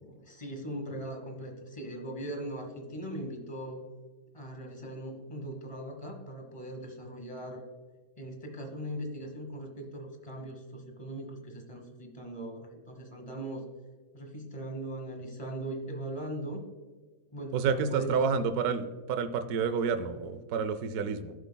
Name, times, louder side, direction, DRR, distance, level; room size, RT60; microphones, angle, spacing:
voice 1, 0.0-3.8 4.3-7.6 8.2-13.6 14.1-16.6 17.3-18.2, right 1 dB, 20° left, 3 dB, 1.4 m, -40 dB
voice 2, 17.5-21.3, right 6 dB, 75° right, 11 dB, 1.1 m, -29 dB
14.0 x 7.5 x 2.3 m, 1.3 s
omnidirectional pair, 1.7 m